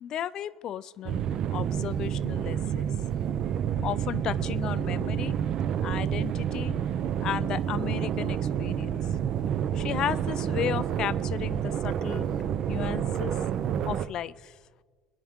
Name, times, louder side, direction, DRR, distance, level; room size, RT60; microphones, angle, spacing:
voice 1, 0.0-1.2 1.5-2.9 3.8-5.4 5.8-6.8 7.2-9.0 9.7-12.3 12.7-13.4 13.9-14.6, left 10 dB, 30° left, 17 dB, 0.3 m, -34 dB
sound 1, 1.1-14.1, right 9 dB, 35° right, 0.5 m, -29 dB
27.5 x 11.0 x 3.6 m, 1.5 s
cardioid pair, 170°, 2 cm